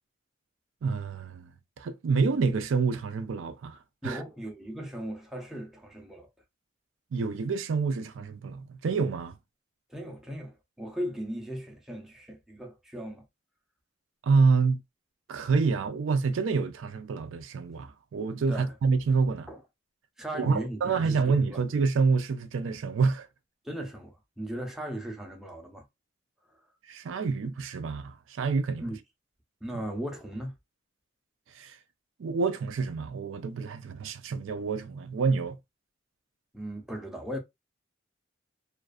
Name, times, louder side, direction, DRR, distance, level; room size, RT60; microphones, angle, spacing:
voice 1, 0.8-1.5 1.8-3.8 4.0-4.2 7.1-9.3 14.2-14.8 15.3-19.5 20.3-23.3 26.9-28.8 31.5-31.8 32.2-35.6, right 4 dB, 85° right, 0.4 m, -27 dB
voice 2, 4.0-6.3 9.9-13.3 18.5-18.7 19.5-19.6 20.2-21.6 23.6-25.9 28.8-29.0 29.6-30.5 36.5-37.4, right 1 dB, ahead, 0.5 m, -37 dB
2.5 x 2.4 x 2.3 m
head